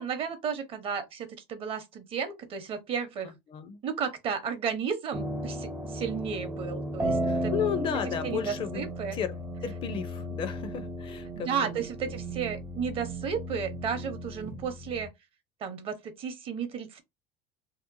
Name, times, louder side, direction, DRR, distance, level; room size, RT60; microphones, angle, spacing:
voice 1, 0.0-3.3 3.8-7.5 8.2-9.2 11.4-15.1 15.6-17.0, right 6 dB, 45° right, 0.7 m, -33 dB
voice 2, 3.2-3.8 7.2-11.8, left 8 dB, 40° left, 0.4 m, -34 dB
sound 1, 5.1-15.1, right 1 dB, 15° right, 0.4 m, -35 dB
2.8 x 2.1 x 2.5 m
cardioid pair, 125°, 14 cm